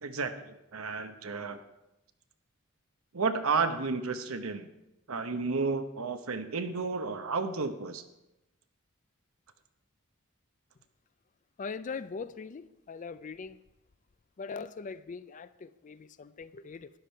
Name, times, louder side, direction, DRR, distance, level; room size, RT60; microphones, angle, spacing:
voice 1, 0.0-1.6 3.1-4.7 5.1-8.0, right 4 dB, 80° right, 8 dB, 0.9 m, -32 dB
voice 2, 11.6-13.6 14.4-16.9, left 5 dB, 40° left, 15 dB, 0.4 m, -41 dB
12.5 x 10.0 x 4.5 m, 0.94 s
head